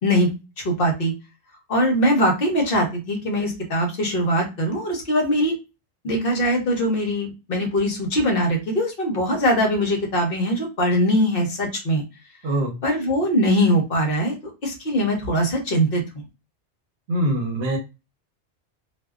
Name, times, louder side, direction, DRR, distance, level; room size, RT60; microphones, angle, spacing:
voice 1, 0.0-0.3 0.6-1.1 1.7-5.5 6.0-12.0 12.8-14.4 14.6-16.2, equal, 55° left, 2 dB, 0.9 m, -21 dB
voice 2, 12.4-12.8 17.1-17.8, right 1 dB, 70° right, 4 dB, 0.9 m, -23 dB
2.5 x 2.1 x 2.3 m, 0.28 s
omnidirectional pair, 1.2 m